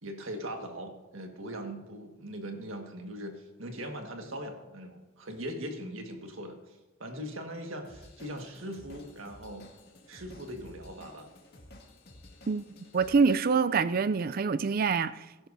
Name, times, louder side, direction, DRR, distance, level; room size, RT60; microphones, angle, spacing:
voice 1, 0.0-6.6 7.0-9.7 10.1-11.3, equal, 80° right, 1.7 m, -40 dB
Drum kit / Drum, 7.8-13.5, left 1 dB, 50° left, 2.0 m, -53 dB
voice 2, 12.9-15.5, right 5 dB, 45° right, 0.4 m, -26 dB
17.5 x 10.5 x 2.7 m
head